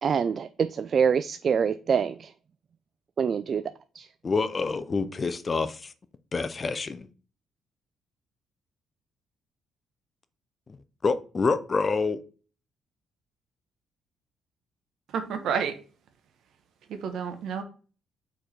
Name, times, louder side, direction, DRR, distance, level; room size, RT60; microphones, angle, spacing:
voice 1, 0.0-2.3 3.2-3.6 4.0-4.1, right 7 dB, 50° right, 0.3 m, -25 dB
voice 2, 4.2-5.9 6.3-7.1 10.7-10.8 11.0-12.2, left 4 dB, 35° left, 0.6 m, -27 dB
voice 3, 15.1-15.7 16.9-17.6, right 6 dB, 75° right, 1.1 m, -30 dB
4.5 x 4.5 x 5.1 m
cardioid pair, 90°, 0 cm